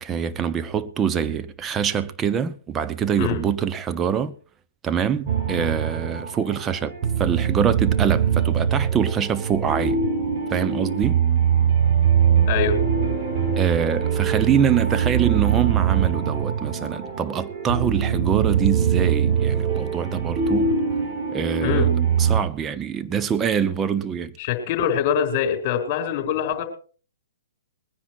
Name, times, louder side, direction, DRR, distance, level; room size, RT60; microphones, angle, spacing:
voice 1, 0.0-4.4 4.8-10.1 10.5-11.2 13.6-20.7 21.3-21.9 22.2-24.4, right 7 dB, 15° right, 1.0 m, -24 dB
sound 1, 5.3-22.4, right 7 dB, 35° right, 4.1 m, -22 dB
voice 2, 12.5-12.8 21.6-21.9 24.4-26.6, left 8 dB, 35° left, 4.3 m, -23 dB
21.0 x 9.9 x 4.6 m
hypercardioid pair, 125°, 0 cm